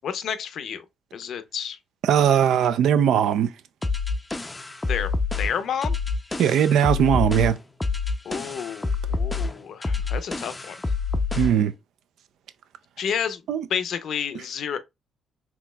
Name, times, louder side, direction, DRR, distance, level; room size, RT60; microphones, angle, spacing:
voice 1, 0.0-0.8 1.1-1.8 4.9-5.1 5.4-6.0 8.2-10.8 13.0-13.4 13.7-14.8, left 8 dB, 65° left, 0.6 m, -30 dB
voice 2, 2.1-3.5 6.4-7.6 11.4-11.7 13.5-13.6, right 9 dB, 80° right, 0.4 m, -19 dB
sound 1, 3.8-11.6, left 4 dB, 15° left, 0.5 m, -27 dB
4.2 x 2.9 x 2.2 m
cardioid pair, 90°, 0 cm